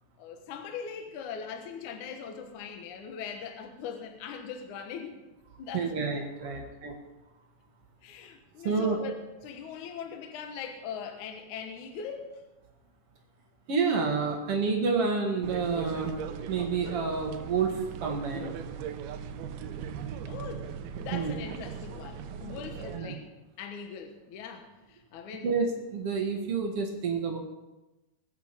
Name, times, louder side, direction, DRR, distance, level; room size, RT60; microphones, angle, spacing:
voice 1, 0.2-5.2 5.6-5.9 8.0-9.2 9.4-12.5 20.3-20.7 21.0-23.3 23.6-25.5, left 7 dB, 65° left, 5 dB, 2.0 m, -40 dB
voice 2, 5.7-6.9 8.6-9.0 13.7-16.1 16.5-18.5 21.1-21.3 22.9-23.1 25.4-27.4, right 5 dB, 60° right, 2 dB, 1.5 m, -29 dB
sound 1, 15.4-23.0, right 7 dB, 80° right, 2.4 m, -39 dB
20.5 x 8.8 x 5.1 m, 1.0 s
omnidirectional pair, 5.0 m